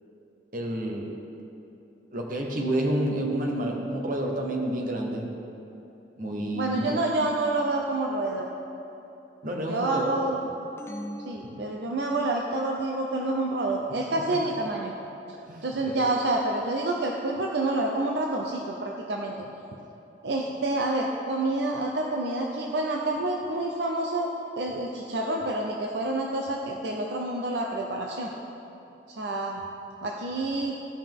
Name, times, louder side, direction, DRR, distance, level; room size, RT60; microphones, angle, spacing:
voice 1, 0.5-1.1 2.1-5.3 6.2-6.9 9.4-10.1 14.1-14.2 15.5-16.1, right 1 dB, 50° right, 0 dB, 1.1 m, -29 dB
voice 2, 6.6-8.4 9.7-10.4 11.3-14.9 15.6-19.3 20.2-24.3 24.6-28.3 29.1-29.6 30.0-30.8, right 2 dB, 70° right, 0 dB, 0.6 m, -28 dB
sound 1, 10.8-12.5, equal, 15° left, 0.5 m, -41 dB
15.0 x 5.7 x 3.6 m, 3.0 s
head